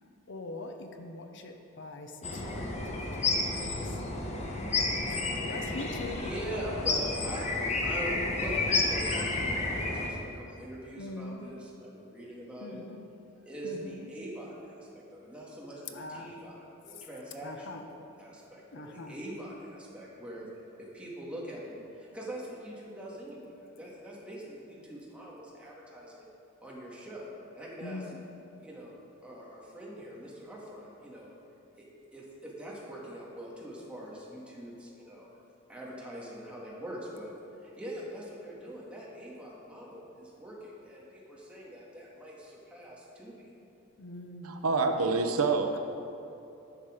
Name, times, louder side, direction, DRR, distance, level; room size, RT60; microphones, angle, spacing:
voice 1, 0.3-4.0 5.4-6.2 11.0-11.5 12.6-13.1 13.6-14.1 15.9-16.4 17.4-17.9 18.7-19.2 27.8-28.3 44.0-44.6, left 2 dB, 55° left, 5 dB, 0.7 m, -43 dB
sound 1, 2.2-10.1, left 3 dB, 30° left, 1.0 m, -31 dB
voice 2, 5.9-7.5 7.8-12.8 13.4-17.9 18.2-20.5 20.8-26.3 26.6-28.0 28.6-28.9 29.2-31.3 31.8-31.9 32.1-35.3 35.7-37.3 37.6-43.5, equal, 5° right, -6 dB, 2.0 m, -43 dB
voice 3, 44.4-45.8, right 4 dB, 80° right, 5 dB, 0.8 m, -27 dB
11.0 x 7.4 x 5.0 m, 2.9 s
head